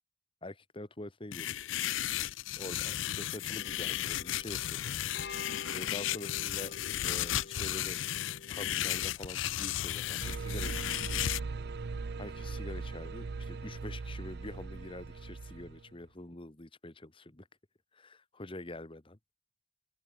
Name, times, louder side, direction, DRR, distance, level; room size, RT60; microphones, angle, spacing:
voice 1, 0.4-1.6 2.6-4.9 5.7-6.7 7.0-8.0 8.5-11.2 12.2-17.5 17.9-19.2, left 1 dB, 25° left, 1.4 m, -45 dB
sound 1, 1.3-11.4, left 12 dB, 75° left, 0.4 m, -34 dB
sound 2, 3.5-9.1, left 3 dB, 55° left, 5.5 m, -49 dB
sound 3, 10.2-15.9, right 4 dB, 55° right, 0.5 m, -39 dB
open air
head